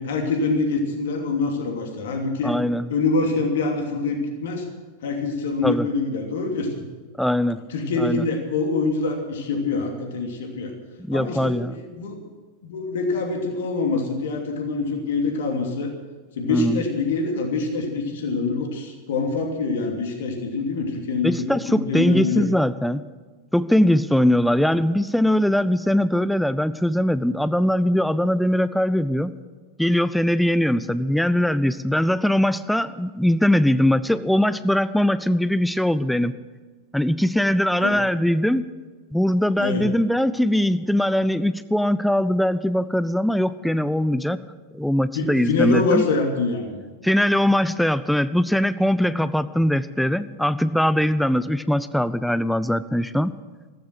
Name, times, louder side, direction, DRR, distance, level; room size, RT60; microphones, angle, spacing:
voice 1, 0.0-2.5 2.9-4.6 5.0-6.8 7.7-10.7 11.1-12.2 12.6-15.9 16.4-22.5 37.8-38.0 39.6-39.9 45.1-46.8, left 3 dB, 60° left, 3 dB, 2.8 m, -25 dB
voice 2, 2.4-2.9 5.6-5.9 7.2-7.6 8.0-8.2 11.0-11.8 16.5-16.8 21.2-23.0 23.5-29.3 29.8-36.3 36.9-38.6 39.1-44.4 44.7-46.0 47.0-53.3, left 1 dB, ahead, 14 dB, 0.6 m, -21 dB
15.0 x 15.0 x 6.1 m, 1.4 s
figure-of-eight pair, 90°, 0 cm